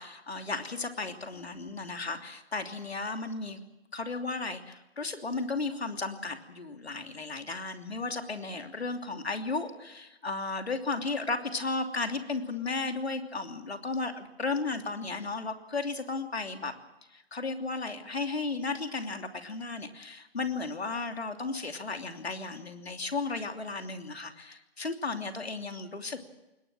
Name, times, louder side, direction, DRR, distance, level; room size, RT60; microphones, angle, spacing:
voice 1, 0.0-3.6 3.9-16.7 17.1-26.3, left 3 dB, 70° left, 6 dB, 3.0 m, -34 dB
21.5 x 19.5 x 7.5 m, 0.97 s
figure-of-eight pair, 170°, 32 cm